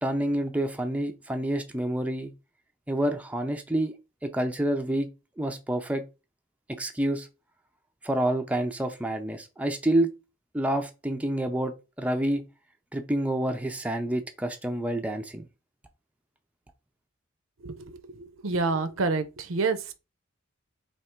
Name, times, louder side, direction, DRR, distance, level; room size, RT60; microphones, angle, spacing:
voice 1, 0.0-2.3 2.9-3.9 4.2-5.1 5.4-6.0 6.7-7.3 8.0-10.1 10.5-12.4 12.9-15.4, right 1 dB, 5° right, 0.4 m, -28 dB
voice 2, 17.6-20.0, right 4 dB, 70° right, 0.5 m, -29 dB
3.4 x 2.8 x 4.3 m
head